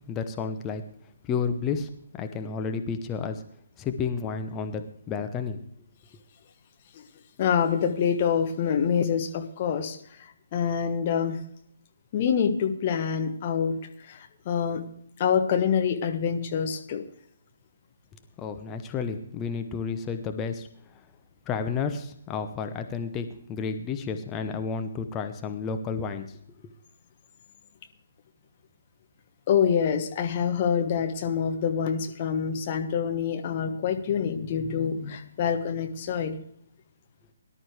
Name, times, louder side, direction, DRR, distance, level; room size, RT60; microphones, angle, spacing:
voice 1, 0.1-0.8 1.2-3.4 3.8-5.6 18.4-21.0 21.5-26.4, left 5 dB, 15° left, 7 dB, 0.9 m, -31 dB
voice 2, 7.4-10.0 10.5-11.4 12.1-13.8 14.0-14.8 15.2-17.0 29.5-36.4, left 7 dB, 35° left, 5 dB, 1.4 m, -26 dB
18.5 x 11.5 x 3.3 m, 0.68 s
figure-of-eight pair, 135°, 0 cm